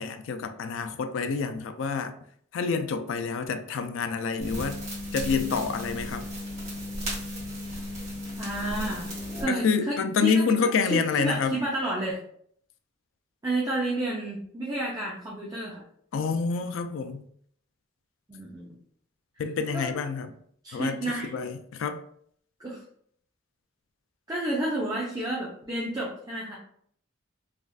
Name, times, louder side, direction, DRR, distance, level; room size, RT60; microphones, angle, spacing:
voice 1, 0.0-2.1 2.5-4.8 5.1-6.2 9.5-11.6 16.1-17.2 19.4-20.3 20.7-21.0 21.3-22.0, left 5 dB, 70° left, 9 dB, 0.3 m, -27 dB
sound 1, 4.4-9.4, left 1 dB, 35° right, 1.4 m, -35 dB
voice 2, 8.4-9.1 9.4-10.0 10.2-12.2 13.4-15.8 18.3-18.7 19.7-19.9 20.6-21.3 22.6-22.8 24.3-26.6, right 1 dB, 20° right, -5 dB, 0.5 m, -31 dB
3.4 x 2.4 x 2.2 m, 0.64 s
head